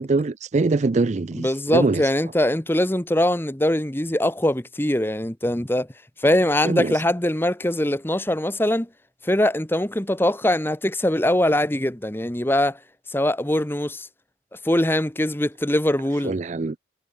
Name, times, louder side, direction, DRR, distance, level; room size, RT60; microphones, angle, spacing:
voice 1, 0.0-2.0 6.6-6.9 16.2-16.8, right 3 dB, 40° right, 0.4 m, -23 dB
voice 2, 1.3-5.9 6.2-8.9 9.2-12.8 13.1-14.1 14.6-16.3, left 1 dB, 10° left, 1.1 m, -22 dB
head